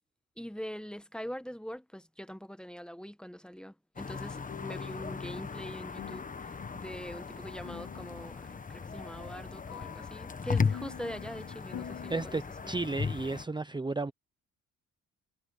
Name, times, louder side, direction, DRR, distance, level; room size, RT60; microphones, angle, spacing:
voice 1, 0.4-12.8, equal, 5° left, 1.2 m, -43 dB
sound 1, 4.0-13.5, left 5 dB, 25° left, 1.3 m, -37 dB
sound 2, 4.5-12.3, left 11 dB, 80° left, 2.5 m, -48 dB
voice 2, 12.1-14.1, right 3 dB, 15° right, 0.9 m, -33 dB
cardioid pair, 90°, 30 cm